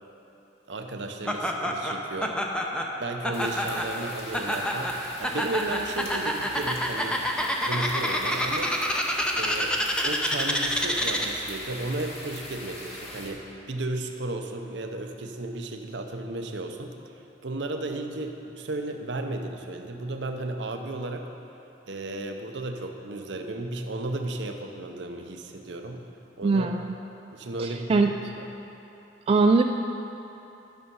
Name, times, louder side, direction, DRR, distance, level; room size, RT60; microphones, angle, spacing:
voice 1, 0.7-2.6 3.0-7.2 7.6-8.7 9.4-9.7 10.0-17.0 17.4-21.3 21.9-26.0 26.4-26.7 27.3-28.0 28.4-28.5, right 2 dB, 85° right, 5 dB, 0.8 m, -34 dB
Laughter, 1.3-11.5, equal, 5° left, 0.6 m, -28 dB
sound 1, 3.3-13.3, left 1 dB, 35° left, 1.7 m, -41 dB
voice 2, 26.4-27.0 27.6-28.1 29.3-29.6, right 3 dB, 35° right, 4 dB, 0.3 m, -21 dB
11.5 x 6.8 x 5.4 m, 3.0 s
head